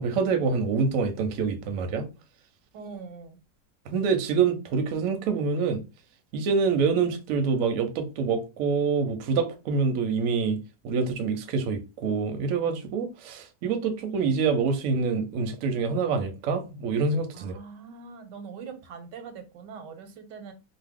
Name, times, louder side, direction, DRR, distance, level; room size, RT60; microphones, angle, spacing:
voice 1, 0.0-2.1 3.9-5.8 6.3-10.6 10.8-17.6, right 5 dB, 70° right, 0.8 m, -26 dB
voice 2, 2.7-3.4 17.3-20.5, right 5 dB, 85° right, 1.3 m, -42 dB
2.8 x 2.0 x 3.5 m
omnidirectional pair, 1.8 m